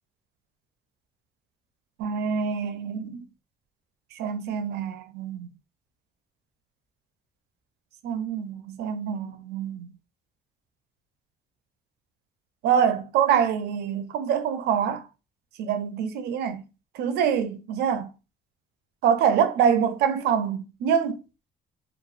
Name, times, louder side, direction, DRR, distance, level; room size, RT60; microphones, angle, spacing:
voice 1, 2.0-3.2 4.2-5.5 8.0-9.9 12.6-15.0 15.6-16.6 16.9-18.1 19.0-21.2, right 8 dB, 75° right, 0.4 m, -25 dB
2.9 x 2.0 x 2.4 m
cardioid pair, 110°, 17 cm